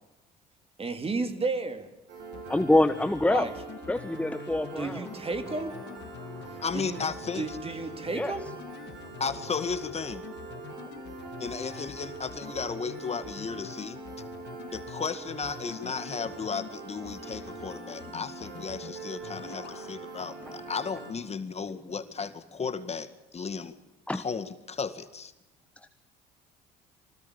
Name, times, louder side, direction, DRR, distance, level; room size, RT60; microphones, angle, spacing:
voice 1, 0.8-1.9 3.3-3.5 4.8-5.7 6.7-7.0 7.3-8.5, right 3 dB, 30° right, 8 dB, 3.5 m, -32 dB
Piano, 2.1-21.1, right 3 dB, 60° right, 7.5 m, -43 dB
sound 1, 2.3-16.7 17.0-17.7 18.0-18.9 19.2-19.8, left 10 dB, 60° left, 2.0 m, -46 dB
voice 2, 2.5-3.5 3.9-5.1 6.3-6.4 8.1-8.3 19.5-19.9 20.4-20.5 24.1-24.2, left 1 dB, 5° left, 11 dB, 1.3 m, -26 dB
voice 3, 6.6-7.6 9.2-10.2 11.4-14.0 14.7-23.7 24.1-25.3, left 5 dB, 30° left, 11 dB, 2.1 m, -34 dB
25.0 x 18.5 x 8.6 m, 0.96 s
hypercardioid pair, 70°, 20 cm